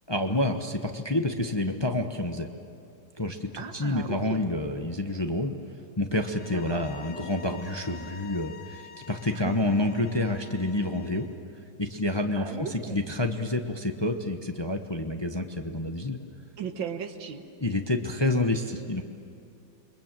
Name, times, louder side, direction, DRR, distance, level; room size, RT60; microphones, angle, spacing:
voice 1, 0.1-2.5 3.2-5.5 6.0-11.3 11.8-16.2 17.6-19.0, left 1 dB, 20° left, 4 dB, 0.8 m, -28 dB
voice 2, 3.6-4.4 6.5-6.8 9.3-9.7 12.4-13.1 16.6-17.5, right 6 dB, 85° right, 7 dB, 2.0 m, -36 dB
sound 1, 6.2-11.3, left 8 dB, 90° left, 1.8 m, -48 dB
28.5 x 23.0 x 7.6 m, 2.6 s
omnidirectional pair, 2.0 m